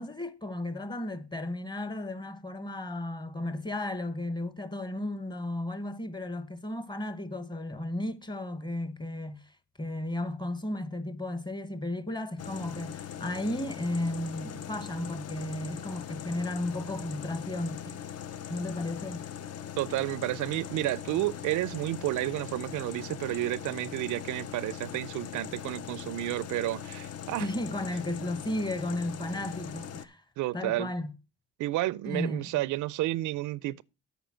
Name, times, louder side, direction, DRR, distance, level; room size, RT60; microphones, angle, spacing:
voice 1, 0.0-9.5 9.8-18.0 18.5-19.2 27.4-30.2 30.5-31.1 32.0-32.6, left 1 dB, 15° left, 1.0 m, -34 dB
sound 1, 12.4-30.1, left 9 dB, 55° left, 0.7 m, -41 dB
voice 2, 19.8-27.5 30.4-30.9 31.6-33.8, right 16 dB, 80° right, 0.5 m, -31 dB
8.0 x 5.0 x 7.4 m
cardioid pair, 90°, 30 cm